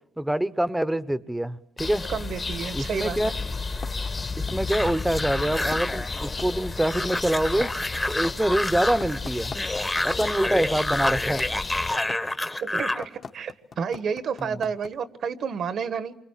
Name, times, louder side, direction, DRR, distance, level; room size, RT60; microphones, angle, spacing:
voice 1, 0.2-2.1 2.7-3.3 4.4-7.7 8.1-9.5 10.0-11.5 14.5-14.6, right 1 dB, 5° right, 1.0 m, -25 dB
sound 1, 1.8-11.9, left 3 dB, 35° left, 1.6 m, -33 dB
voice 2, 2.1-3.2 12.6-16.1, right 6 dB, 60° right, 1.4 m, -30 dB
sound 2, 3.8-14.9, left 5 dB, 50° left, 1.8 m, -40 dB
sound 3, 4.7-13.1, left 1 dB, 15° left, 1.3 m, -29 dB
28.5 x 25.0 x 7.5 m
cardioid pair, 90°, 0 cm